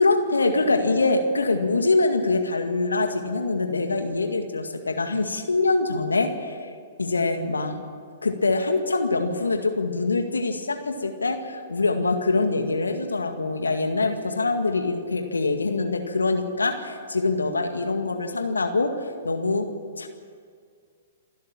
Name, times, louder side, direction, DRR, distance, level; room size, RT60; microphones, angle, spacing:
voice 1, 0.0-6.7 7.0-7.8 8.2-19.7 20.0-20.1, left 3 dB, 85° left, 6 dB, 1.9 m, -24 dB
27.5 x 12.5 x 8.8 m, 2.1 s
figure-of-eight pair, 115°, 0 cm